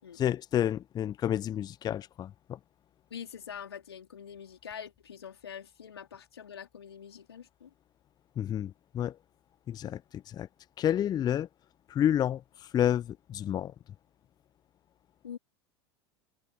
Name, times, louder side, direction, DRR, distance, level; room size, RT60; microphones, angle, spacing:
voice 1, 0.1-2.6 8.4-9.1 9.7-10.5 10.8-11.5 11.9-13.7, left 10 dB, 30° left, 0.7 m, -30 dB
voice 2, 3.1-7.7 9.8-9.9 15.2-15.4, left 8 dB, 75° left, 3.5 m, -45 dB
figure-of-eight pair, 75°, 13 cm